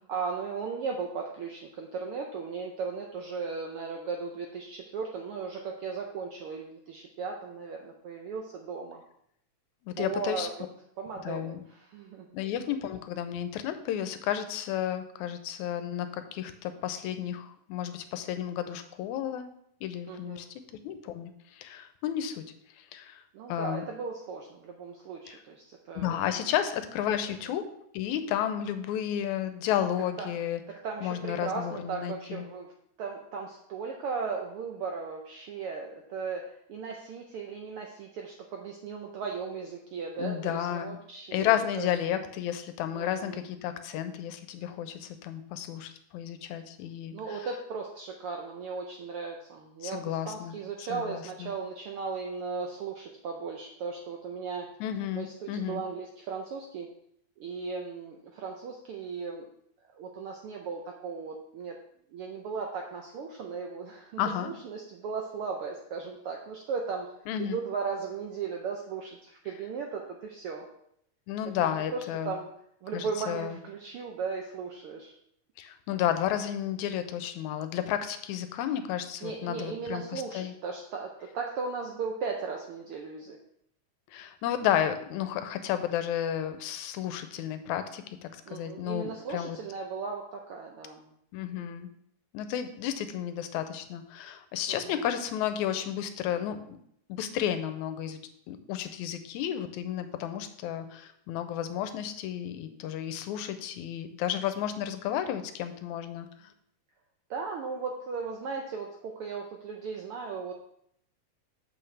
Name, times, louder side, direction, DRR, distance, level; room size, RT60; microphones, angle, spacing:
voice 1, 0.1-9.0 10.0-10.5 11.0-12.3 20.1-20.4 23.3-26.4 30.2-30.3 30.8-32.7 33.0-36.4 36.7-41.9 42.9-43.4 47.1-54.7 55.1-56.9 57.4-59.5 59.9-61.8 62.1-67.1 67.4-70.6 71.6-72.5 72.8-75.1 79.2-83.4 88.5-91.1 91.4-91.8 94.7-95.0 107.3-110.5, right 5 dB, 80° right, 1 dB, 1.2 m, -37 dB
voice 2, 9.8-10.5 11.2-11.6 12.3-19.5 19.8-20.5 20.8-22.4 22.8-23.2 23.5-23.8 25.3-25.4 26.0-27.7 27.9-30.6 31.0-32.4 40.2-41.0 41.3-47.5 49.8-51.5 54.8-55.8 64.2-64.5 67.3-67.6 71.3-72.3 72.9-73.6 75.6-80.5 84.1-89.6 91.3-91.9 92.3-96.6 97.1-98.2 98.5-106.5, left 10 dB, 90° left, 10 dB, 2.0 m, -32 dB
7.8 x 6.3 x 3.3 m, 0.71 s
omnidirectional pair, 3.3 m